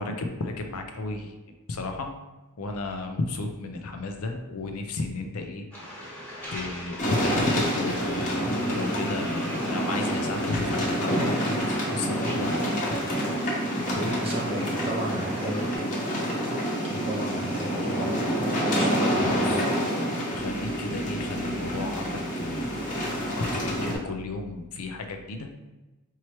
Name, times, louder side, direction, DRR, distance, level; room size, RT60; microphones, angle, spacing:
voice 1, 0.0-1.3 1.7-2.1 2.6-5.6 6.5-12.8 19.2-19.6 20.3-25.5, left 3 dB, 75° left, 5 dB, 0.6 m, -33 dB
Waves surf, 5.7-15.8, equal, 10° left, 1.3 m, -39 dB
sound 1, 7.0-23.9, equal, 35° left, 1.0 m, -28 dB
voice 2, 13.8-15.6 16.8-18.0 18.6-19.6, equal, 25° right, -3 dB, 0.9 m, -33 dB
4.7 x 3.0 x 3.0 m, 1.1 s
head